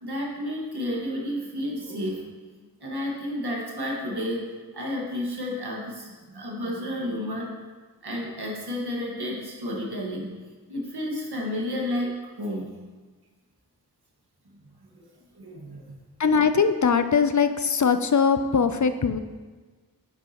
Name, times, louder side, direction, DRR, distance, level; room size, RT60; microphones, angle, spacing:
voice 1, 0.0-2.3 2.8-4.5 4.7-7.5 8.0-10.3 10.7-12.7 14.8-15.1 15.4-16.0, left 1 dB, 85° right, -2 dB, 1.8 m, -31 dB
voice 2, 16.2-19.2, left 6 dB, 50° left, 10 dB, 0.5 m, -21 dB
9.4 x 8.2 x 3.0 m, 1.4 s
wide cardioid pair, 60°, 37 cm